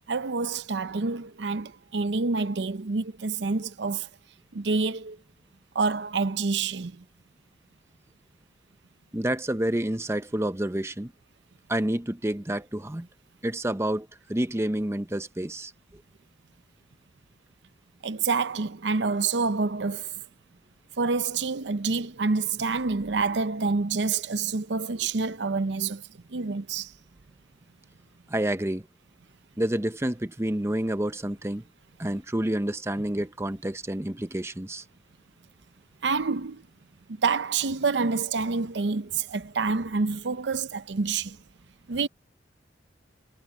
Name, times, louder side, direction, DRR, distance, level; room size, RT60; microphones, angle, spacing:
voice 1, 0.1-4.1 4.5-5.2 5.7-7.0 18.0-20.2 21.0-26.9 36.0-36.6 37.2-41.4 41.9-42.1, right 4 dB, 75° right, 0.7 m, -27 dB
voice 2, 9.1-11.1 11.7-13.1 13.4-15.7 28.3-28.8 29.6-31.6 32.0-34.8, right 1 dB, 15° right, 0.8 m, -29 dB
head